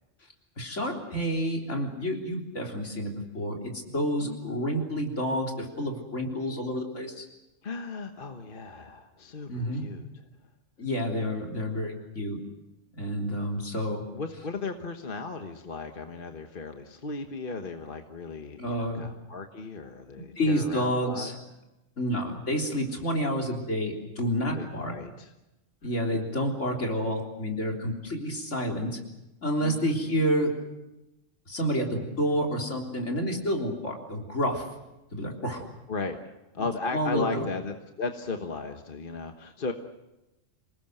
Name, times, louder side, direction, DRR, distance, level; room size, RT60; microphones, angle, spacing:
voice 1, 0.6-7.3 9.5-9.9 10.8-12.4 12.9-14.0 18.6-19.1 20.4-21.4 22.0-24.9 25.8-29.0 29.4-30.5 31.5-34.6 35.1-35.6 36.6-36.7 36.9-37.5, equal, 70° left, 1 dB, 4.0 m, -29 dB
voice 2, 7.6-10.1 14.1-21.3 24.5-25.3 29.6-30.3 35.9-36.2 36.5-39.7, left 4 dB, 45° left, 5 dB, 1.5 m, -36 dB
27.5 x 19.0 x 7.9 m, 0.96 s
omnidirectional pair, 1.3 m